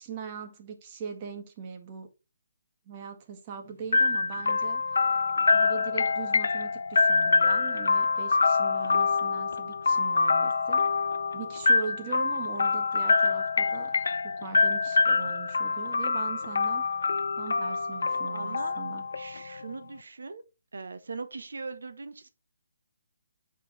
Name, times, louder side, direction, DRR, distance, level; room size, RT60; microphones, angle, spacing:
voice 1, 0.0-2.1 2.8-5.1 5.5-10.9 11.3-13.9 14.2-16.8 17.4-19.0, right 6 dB, 30° right, 1.7 m, -40 dB
sound 1, 3.9-19.7, left 4 dB, 65° left, 0.5 m, -25 dB
voice 2, 18.3-18.8 19.1-20.4 20.7-22.3, right 4 dB, 70° right, 1.0 m, -40 dB
7.4 x 5.0 x 4.1 m
figure-of-eight pair, 145°, 0 cm